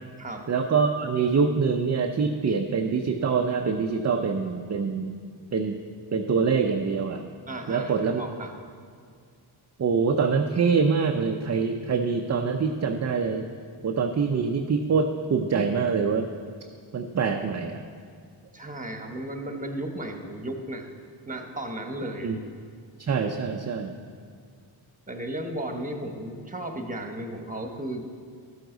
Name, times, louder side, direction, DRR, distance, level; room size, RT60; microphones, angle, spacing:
voice 1, 0.5-5.2 5.5-5.8 6.1-7.3 7.7-8.2 9.8-13.5 13.8-16.3 16.9-17.8 22.2-22.4 23.0-23.9, right 5 dB, 35° right, 4 dB, 0.6 m, -25 dB
voice 2, 7.5-8.5 15.5-15.7 18.5-20.9 21.3-22.3 25.1-28.1, right 1 dB, 15° right, 4 dB, 1.3 m, -34 dB
12.0 x 7.7 x 3.9 m, 2.1 s
cardioid pair, 55°, 49 cm